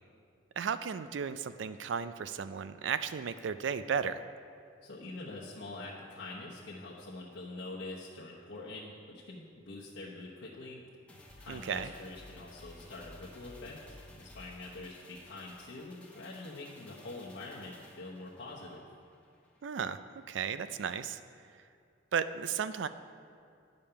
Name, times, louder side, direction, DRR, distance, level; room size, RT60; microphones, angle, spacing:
voice 1, 0.6-4.2 11.5-11.9 19.6-21.2 22.1-22.9, right 7 dB, 70° right, 13 dB, 0.4 m, -34 dB
voice 2, 4.8-10.8 11.4-18.8, left 2 dB, 75° left, -6 dB, 1.0 m, -45 dB
sound 1, 11.1-19.7 20.0-20.1, left 1 dB, 5° left, 0.9 m, -55 dB
10.0 x 5.3 x 5.7 m, 2.4 s
head